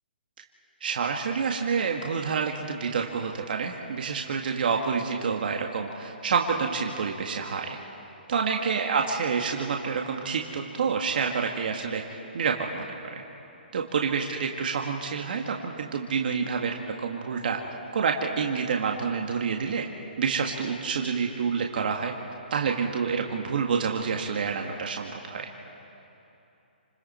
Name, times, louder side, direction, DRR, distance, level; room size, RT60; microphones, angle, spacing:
voice 1, 0.8-7.8 8.3-12.0 12.3-12.9 13.1-13.2 13.7-17.6 17.9-19.8 20.2-22.1 22.5-25.5, right 5 dB, 60° right, 2 dB, 1.7 m, -28 dB
28.5 x 26.5 x 4.4 m, 2.9 s
hypercardioid pair, 155°, 6 cm